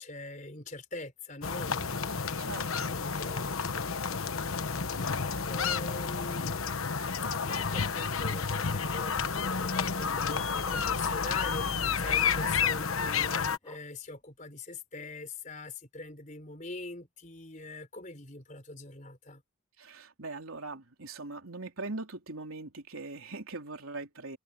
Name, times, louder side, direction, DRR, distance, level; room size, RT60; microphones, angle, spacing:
voice 1, 0.0-2.6 2.9-6.7 7.3-19.4, left 2 dB, 35° left, 4.2 m, -43 dB
sound 1, 1.4-13.6, left 5 dB, 85° left, 1.1 m, -31 dB
voice 2, 2.4-3.0 19.8-24.4, right 3 dB, 90° right, 3.6 m, -41 dB
Dog, 7.8-8.2 8.5-8.6 8.9-9.1 9.5-10.9 11.3-11.5 11.7-12.1 12.6-12.7 13.3-14.1 14.5-14.6, left 2 dB, 20° left, 3.1 m, -52 dB
head